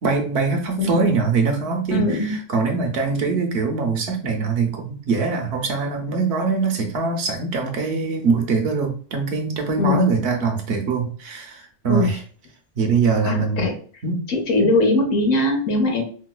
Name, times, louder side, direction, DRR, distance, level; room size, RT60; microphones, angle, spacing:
voice 1, 0.0-12.2 12.8-13.7 14.0-14.2, right 4 dB, 65° right, 3 dB, 0.9 m, -23 dB
voice 2, 1.9-2.3 9.8-10.1 11.9-12.1 13.2-13.7 14.3-16.0, left 2 dB, 80° left, 2 dB, 1.2 m, -20 dB
4.6 x 2.2 x 2.2 m, 0.43 s
omnidirectional pair, 1.3 m